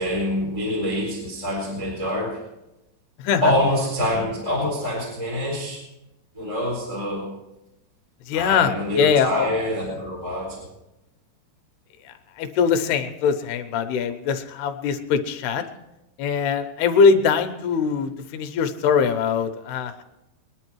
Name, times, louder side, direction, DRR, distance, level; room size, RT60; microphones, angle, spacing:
voice 1, 0.0-2.4 3.4-5.8 6.3-7.3 8.3-10.7, left 1 dB, 10° right, -1 dB, 3.7 m, -25 dB
voice 2, 8.3-9.5 12.4-15.6 16.2-20.0, left 6 dB, 75° left, 7 dB, 2.9 m, -22 dB
21.5 x 10.5 x 4.6 m, 0.93 s
omnidirectional pair, 4.8 m